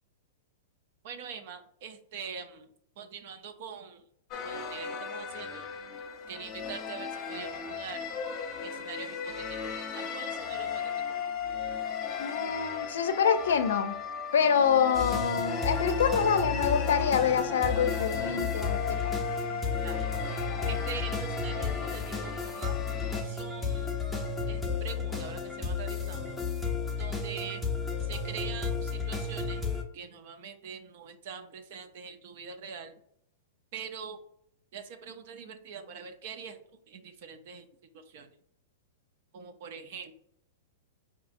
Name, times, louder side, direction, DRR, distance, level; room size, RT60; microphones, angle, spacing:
voice 1, 1.0-2.7 3.0-4.0 4.4-5.7 6.3-8.1 8.6-10.9 19.8-20.2 20.7-22.8 23.2-24.1 24.5-26.4 27.0-27.6 28.0-29.6 29.9-32.9 33.7-34.2 34.7-36.6 36.9-37.7 37.9-38.3 39.3-40.1, right 6 dB, 60° right, 7 dB, 0.6 m, -43 dB
sound 1, 4.3-23.2, left 6 dB, 35° left, 0.7 m, -36 dB
voice 2, 12.2-13.9 14.3-19.0, left 7 dB, 80° left, 10 dB, 0.5 m, -26 dB
sound 2, 14.9-29.8, left 4 dB, 5° left, 0.7 m, -33 dB
4.7 x 2.7 x 2.6 m, 0.70 s
hypercardioid pair, 125°, 0 cm